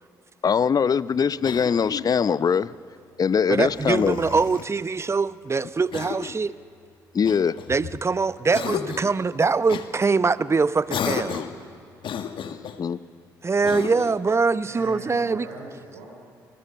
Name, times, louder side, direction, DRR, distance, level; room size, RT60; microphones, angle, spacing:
voice 1, 0.4-2.7 3.2-4.2 7.1-7.6 12.4-13.0, left 6 dB, 45° left, 0.7 m, -22 dB
Cough, 1.4-2.2 3.5-4.7 5.9-6.4 7.2-8.1 8.5-9.2 9.7-9.9 10.9-11.6 12.0-12.8 13.6-14.2, left 8 dB, 60° left, 1.5 m, -33 dB
voice 2, 3.5-6.6 7.7-11.4 13.4-15.5, right 4 dB, 30° right, 0.8 m, -23 dB
voice 3, 14.6-16.1, right 2 dB, 90° right, 4.4 m, -40 dB
24.5 x 20.0 x 6.9 m
hypercardioid pair, 50°, 9 cm